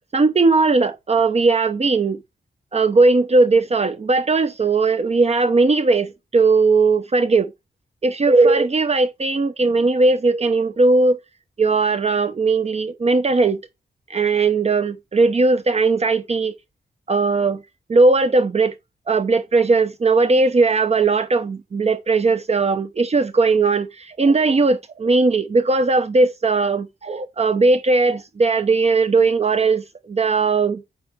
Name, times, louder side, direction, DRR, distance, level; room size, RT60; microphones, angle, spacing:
voice 1, 0.1-2.2 2.7-7.5 8.0-11.2 11.6-13.6 14.1-16.6 17.1-17.6 17.9-18.7 19.1-30.8, right 3 dB, 40° right, 0.8 m, -18 dB
9.6 x 6.6 x 3.6 m
wide cardioid pair, 135°, 18 cm